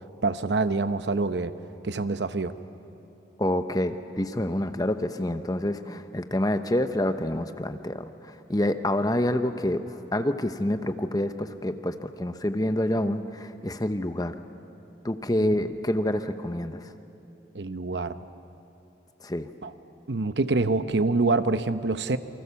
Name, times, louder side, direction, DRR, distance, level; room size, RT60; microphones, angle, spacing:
voice 1, 0.2-1.5 1.8-2.5 15.4-15.5 17.5-18.2 19.6-19.7 20.1-22.2, right 3 dB, 75° right, 11 dB, 0.9 m, -26 dB
voice 2, 3.4-8.0 8.5-9.8 10.1-14.3 15.0-16.8 19.2-19.5, left 1 dB, 20° left, 8 dB, 0.9 m, -27 dB
28.0 x 24.0 x 7.1 m, 2.9 s
head